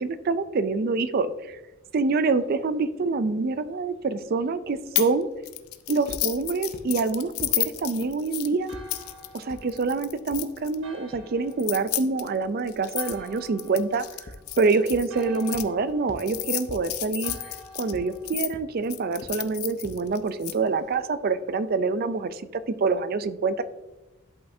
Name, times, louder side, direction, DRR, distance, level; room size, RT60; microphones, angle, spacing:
voice 1, 0.0-1.6 1.9-5.3 5.9-8.7 9.3-14.1 14.6-17.4 17.8-23.6, right 4 dB, 45° right, 13 dB, 0.4 m, -26 dB
sound 1, 5.0-5.2 5.5-10.8 11.5-15.6 16.2-18.5 18.9-20.5, left 16 dB, 90° left, 0.5 m, -32 dB
sound 2, 6.1-6.2 6.7-6.8 7.4-7.5 8.0-8.1 8.7-8.8 9.5-9.6 10.3-10.4 11.1-11.2 13.1-13.2 14.3-14.4 14.9-15.0 15.5-15.6 16.1-16.2 16.7-16.8 17.3-17.4 17.9-18.0 18.5-18.6 19.2-19.3 19.8-19.9, left 2 dB, 45° left, 0.7 m, -40 dB
Church bell, 8.7-18.3, equal, 70° right, 1.0 m, -50 dB
11.5 x 5.5 x 2.7 m, 1.0 s
head